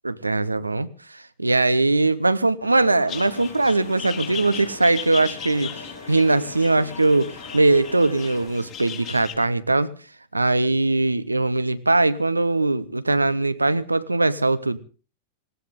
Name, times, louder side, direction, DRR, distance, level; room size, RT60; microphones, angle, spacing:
voice 1, 0.0-0.9 1.1-5.7 6.1-9.9 10.3-14.8, right 2 dB, 80° right, 0.8 m, -21 dB
sound 1, 2.6-8.5, left 3 dB, 80° left, 5.4 m, -41 dB
sound 2, 3.1-9.3, left 9 dB, 40° left, 3.7 m, -37 dB
19.5 x 18.0 x 3.7 m
figure-of-eight pair, 90°, 0 cm